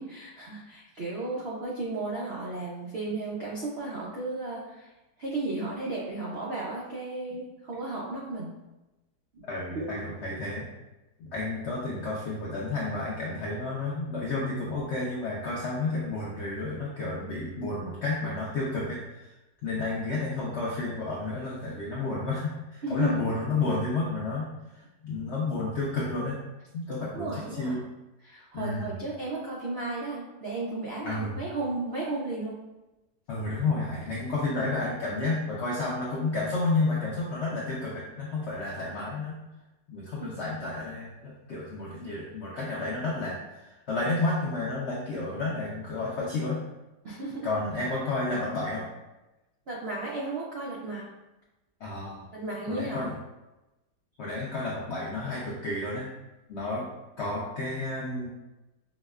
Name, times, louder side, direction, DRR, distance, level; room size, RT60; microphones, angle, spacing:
voice 1, 0.0-4.9 5.2-8.5 9.3-9.4 9.7-10.0 22.8-23.1 27.1-27.8 28.2-32.6 40.2-40.3 47.0-47.5 49.7-51.0 52.3-53.1, right 2 dB, 85° right, -5 dB, 0.5 m, -34 dB
voice 2, 9.5-10.7 11.2-19.3 19.6-24.5 24.7-26.4 26.7-27.8 28.5-29.0 31.0-31.3 33.3-39.4 39.9-46.6 47.4-48.8 51.8-52.3 52.7-53.2 54.2-56.1 56.5-56.9 57.2-58.3, left 3 dB, 75° left, -5 dB, 0.6 m, -31 dB
5.1 x 2.1 x 2.3 m, 1.0 s
omnidirectional pair, 1.8 m